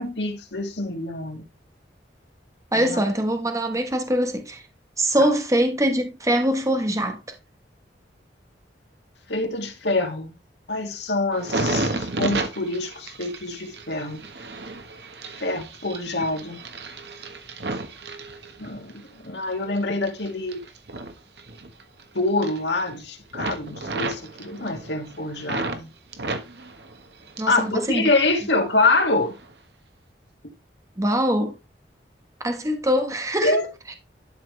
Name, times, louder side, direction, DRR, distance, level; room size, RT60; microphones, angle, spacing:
voice 1, 0.0-1.4 2.7-3.0 9.3-10.3 10.7-14.2 15.4-16.6 18.6-20.6 22.1-25.9 27.5-29.3 33.4-33.6, left 2 dB, 75° left, 2.2 m, -25 dB
voice 2, 2.7-4.6 5.0-7.2 27.4-28.1 31.0-31.6 32.4-33.9, equal, 20° right, 1.2 m, -23 dB
sound 1, 11.3-19.0 19.4-22.0 22.3-23.0 23.3-25.8 26.1-27.7 28.0-28.7 29.3-29.5, right 2 dB, 70° right, 1.4 m, -32 dB
11.5 x 5.1 x 3.2 m
head